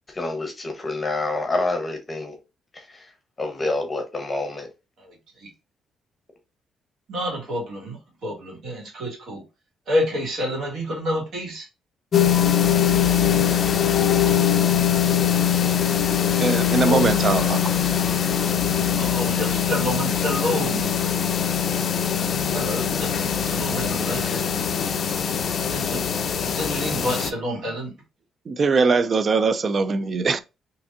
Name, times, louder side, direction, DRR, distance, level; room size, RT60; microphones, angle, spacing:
voice 1, 0.1-2.4 2.7-3.1 3.4-4.7, left 2 dB, 25° left, 0.8 m, -27 dB
voice 2, 5.0-5.5 7.1-9.4 9.9-11.7 16.9-17.1 19.0-20.9 22.5-24.7 25.7-26.1 26.4-27.9, equal, 65° right, 1.9 m, -29 dB
sound 1, 12.1-27.3, left 8 dB, 55° left, 0.3 m, -22 dB
voice 3, 16.4-17.6 18.0-18.1 28.5-30.4, right 4 dB, 45° right, 0.3 m, -21 dB
3.5 x 2.8 x 2.4 m
cardioid pair, 90°, 0 cm